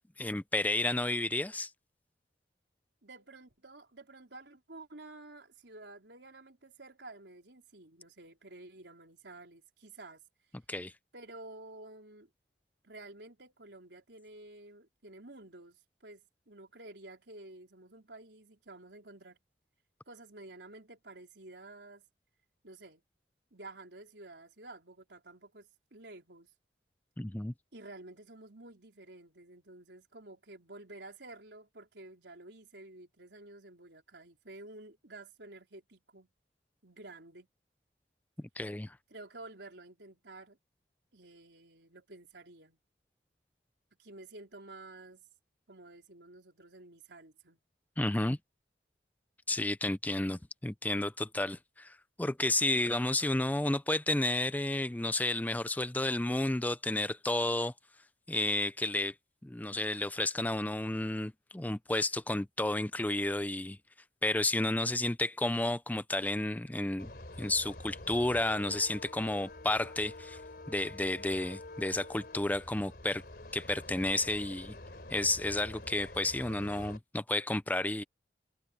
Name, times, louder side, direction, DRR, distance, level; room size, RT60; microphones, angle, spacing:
voice 1, 0.2-1.7 10.7-10.9 27.2-27.5 38.4-39.0 48.0-48.4 49.5-57.7 58.3-59.1 59.4-63.8 64.2-67.1 67.4-70.4 70.7-73.2 73.5-74.7 75.1-78.0, left 2 dB, 10° left, 0.4 m, -31 dB
voice 2, 3.0-10.2 11.1-12.3 12.8-19.4 20.1-22.0 22.6-23.0 23.5-26.5 27.7-36.3 36.8-37.5 39.1-40.6 41.1-42.8 44.0-45.3 45.7-47.6, right 2 dB, 80° right, 4.2 m, -51 dB
sound 1, 67.0-77.0, left 2 dB, 60° left, 3.8 m, -47 dB
head